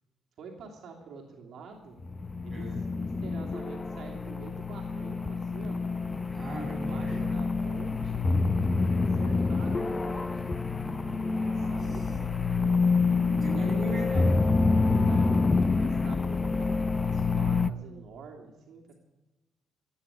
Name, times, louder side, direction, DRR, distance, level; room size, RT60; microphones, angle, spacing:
voice 1, 0.4-2.0 2.4-5.9 6.7-8.3 8.9-10.5 10.9-12.2 13.4-14.6 15.0-15.3 15.8-18.9, right 5 dB, 65° right, 1 dB, 2.9 m, -47 dB
sound 1, 2.0-17.7, left 3 dB, 25° left, 0.7 m, -27 dB
voice 2, 6.3-7.2 11.1-12.0 13.3-14.3, right 1 dB, 35° right, -1 dB, 7.4 m, -38 dB
15.5 x 9.4 x 8.3 m, 1.1 s
cardioid pair, 90°, 0 cm